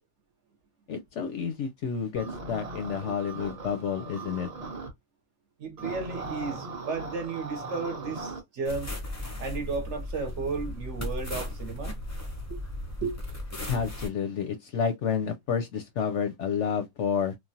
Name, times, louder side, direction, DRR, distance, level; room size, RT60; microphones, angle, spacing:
voice 1, 0.9-4.5 13.7-17.4, left 7 dB, 65° left, 0.7 m, -30 dB
sound 1, 2.1-4.9 5.8-8.4, right 3 dB, 35° right, 0.7 m, -38 dB
voice 2, 5.6-8.9 9.4-12.0 13.0-13.2, right 4 dB, 60° right, 1.0 m, -33 dB
sound 2, 8.6-14.1, left 1 dB, 20° left, 0.4 m, -36 dB
3.1 x 2.1 x 2.7 m
omnidirectional pair, 1.6 m